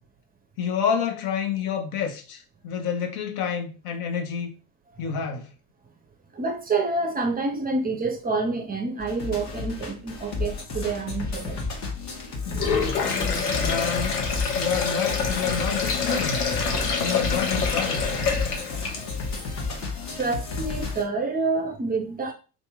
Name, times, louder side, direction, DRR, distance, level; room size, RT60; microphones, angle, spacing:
voice 1, 0.6-4.5 5.0-5.5 13.6-14.2 14.5-16.4 17.0-18.1, left 7 dB, 50° left, 0.9 m, -28 dB
voice 2, 6.3-11.8 20.1-22.3, right 3 dB, 20° right, 0.7 m, -28 dB
sound 1, 9.0-21.0, left 4 dB, 35° left, 1.2 m, -32 dB
Sink (filling or washing), 12.5-19.3, left 5 dB, 80° left, 1.0 m, -27 dB
2.8 x 2.6 x 3.5 m
hypercardioid pair, 80°, 46 cm